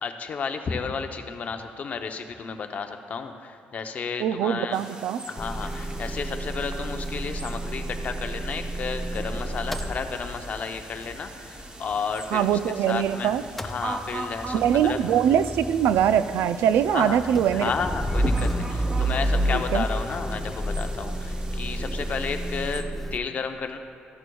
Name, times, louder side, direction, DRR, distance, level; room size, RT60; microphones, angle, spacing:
voice 1, 0.0-4.8 5.3-12.6 12.9-13.4 13.6-15.0 16.9-17.2 17.5-23.8, left 5 dB, 40° left, 6 dB, 0.7 m, -32 dB
voice 2, 4.2-5.2 12.3-13.4 14.5-17.7 19.5-19.8, right 9 dB, 90° right, 13 dB, 0.4 m, -22 dB
sound 1, 4.7-22.8, right 2 dB, 20° right, 0.7 m, -41 dB
Motor vehicle (road) / Engine starting / Idling, 5.4-13.1 13.3-23.2, right 1 dB, 5° left, 0.4 m, -31 dB
14.0 x 11.0 x 2.3 m, 2.9 s
cardioid pair, 140°, 4 cm